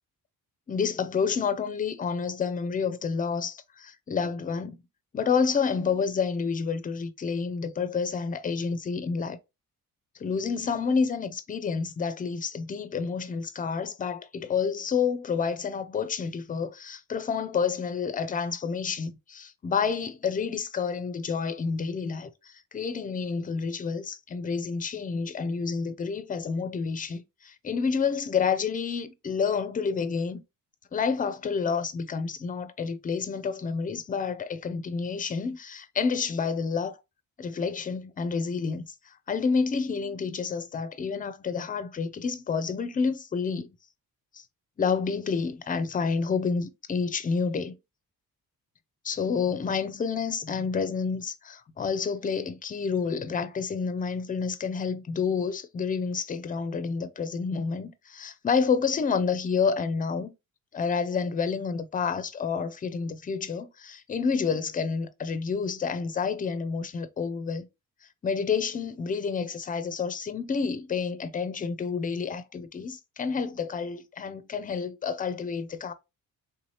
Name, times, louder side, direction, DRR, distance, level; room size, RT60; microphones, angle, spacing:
voice 1, 0.7-4.8 5.1-9.4 10.2-30.4 30.9-37.0 37.4-43.7 44.3-44.4 44.8-47.8 49.0-60.3 60.7-67.7 68.2-75.9, left 5 dB, 25° left, 0.3 m, -29 dB
3.5 x 2.8 x 3.1 m
cardioid pair, 140°, 36 cm